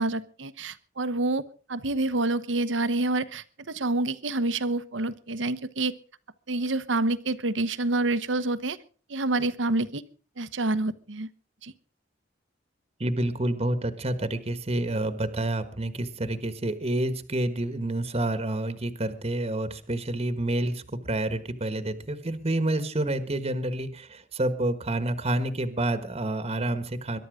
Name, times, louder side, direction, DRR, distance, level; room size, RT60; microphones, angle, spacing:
voice 1, 0.0-1.4 1.7-5.9 6.5-8.8 9.1-10.0 10.4-11.3 11.6-11.7, right 2 dB, 75° right, 14 dB, 1.1 m, -27 dB
voice 2, 13.0-27.2, right 1 dB, 35° right, 11 dB, 1.4 m, -28 dB
22.5 x 11.5 x 5.0 m, 0.39 s
head